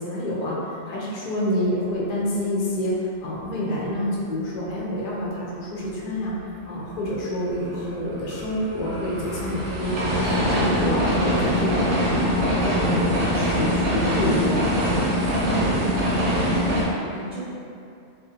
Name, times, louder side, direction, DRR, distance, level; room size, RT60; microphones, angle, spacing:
voice 1, 0.0-6.4 6.6-12.0 12.3-14.7, left 1 dB, 55° left, -6 dB, 0.4 m, -27 dB
sound 1, 7.5-16.9, equal, 85° right, 1.0 m, -23 dB
voice 2, 15.4-17.4, right 2 dB, 40° right, -13 dB, 0.7 m, -32 dB
2.5 x 2.1 x 2.7 m, 2.5 s
omnidirectional pair, 1.2 m